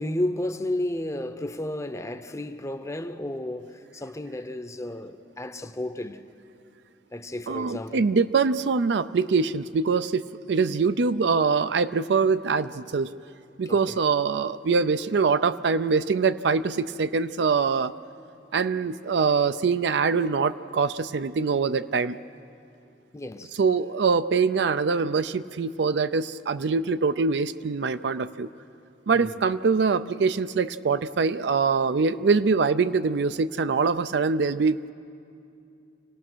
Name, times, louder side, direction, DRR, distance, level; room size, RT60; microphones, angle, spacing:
voice 1, 0.0-6.2 7.1-8.1 13.7-14.0 23.1-23.6 29.1-29.4, left 1 dB, 15° left, 0.7 m, -32 dB
voice 2, 7.5-13.1 13.6-17.9 18.5-22.2 23.6-28.5 29.1-34.9, right 5 dB, 70° right, 0.4 m, -24 dB
26.5 x 17.5 x 6.2 m
head